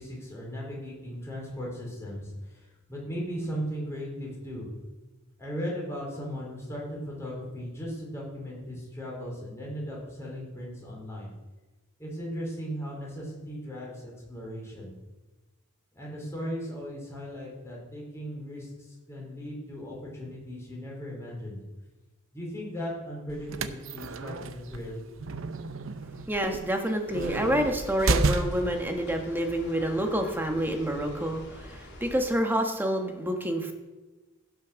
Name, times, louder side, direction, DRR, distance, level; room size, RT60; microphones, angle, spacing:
voice 1, 0.0-4.7 5.4-11.3 12.0-14.9 15.9-21.6 22.3-25.0, equal, 15° left, -3 dB, 4.4 m, -37 dB
sound 1, 23.3-28.8, right 3 dB, 75° right, 0.7 m, -31 dB
voice 2, 26.3-33.7, equal, 10° right, 3 dB, 1.4 m, -28 dB
sound 2, 27.1-32.2, left 1 dB, 55° left, 3.1 m, -46 dB
16.0 x 6.5 x 6.4 m, 1.2 s
head